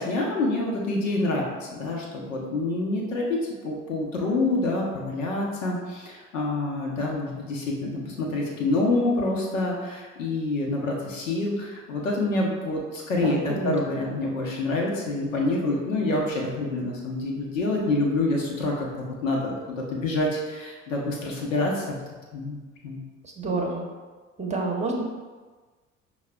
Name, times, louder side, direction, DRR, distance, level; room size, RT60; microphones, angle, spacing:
voice 1, 0.0-22.0 22.3-23.0 23.5-23.6, left 2 dB, 80° left, -2 dB, 0.8 m, -27 dB
voice 2, 13.2-13.7 23.2-23.9 24.4-25.0, right 3 dB, 20° right, -1 dB, 0.8 m, -28 dB
5.5 x 2.3 x 3.3 m, 1.4 s
figure-of-eight pair, 50°, 38 cm